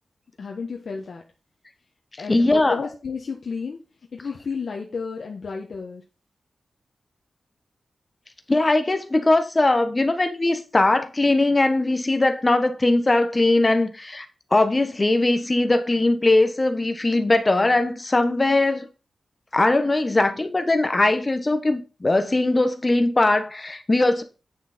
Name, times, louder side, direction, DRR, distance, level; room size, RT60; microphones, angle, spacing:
voice 1, 0.4-1.2 2.2-3.8 4.1-6.0, left 5 dB, 55° left, 1.4 m, -32 dB
voice 2, 2.3-2.9 8.5-14.3 14.5-18.9 19.5-24.2, left 2 dB, 20° left, 1.2 m, -20 dB
9.5 x 6.3 x 4.3 m
wide cardioid pair, 180°, 0 cm